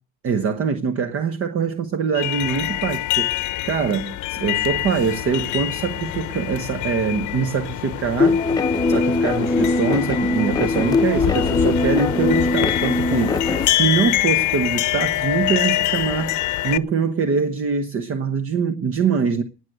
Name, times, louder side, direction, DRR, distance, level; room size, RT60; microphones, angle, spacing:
voice 1, 0.2-8.4 8.9-16.4 16.6-19.4, right 5 dB, 45° right, 1.2 m, -23 dB
sound 1, 2.1-16.8, left 16 dB, 65° left, 0.8 m, -25 dB
sound 2, 8.2-13.7, left 3 dB, 10° left, 0.9 m, -21 dB
19.5 x 6.5 x 8.0 m
cardioid pair, 125°, 32 cm